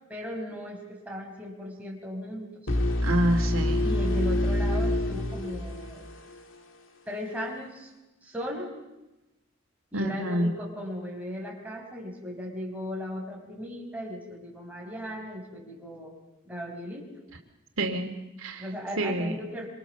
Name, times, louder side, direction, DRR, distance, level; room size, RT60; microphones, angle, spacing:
voice 1, 0.1-2.8 3.8-6.1 7.1-7.9 8.2-8.7 9.9-16.1 16.5-17.1 18.6-19.7, equal, 5° right, -2 dB, 5.3 m, -37 dB
sound 1, 2.7-6.5, left 1 dB, 70° left, 2.4 m, -27 dB
voice 2, 3.0-3.8 9.9-10.5 17.8-18.6 19.0-19.3, right 1 dB, 80° right, 3 dB, 2.6 m, -27 dB
25.5 x 25.0 x 7.0 m, 1.0 s
head